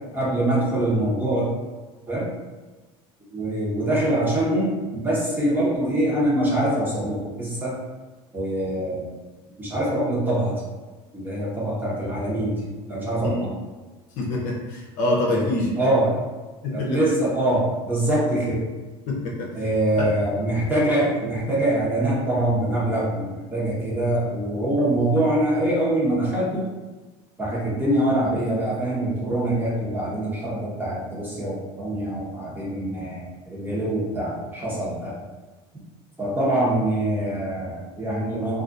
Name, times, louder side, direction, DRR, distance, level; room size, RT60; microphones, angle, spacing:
voice 1, 0.1-1.5 2.1-2.3 3.3-7.8 8.3-9.2 9.6-10.6 11.1-13.5 15.3-16.2 16.7-18.6 19.5-26.7 27.4-35.2 36.2-38.6, right 1 dB, 15° right, -6 dB, 0.9 m, -24 dB
voice 2, 14.2-15.7 16.8-16.9 19.1-19.5 20.0-20.1, left 2 dB, 65° left, -3 dB, 0.7 m, -25 dB
2.4 x 2.3 x 2.6 m, 1.2 s
supercardioid pair, 110°, 14 cm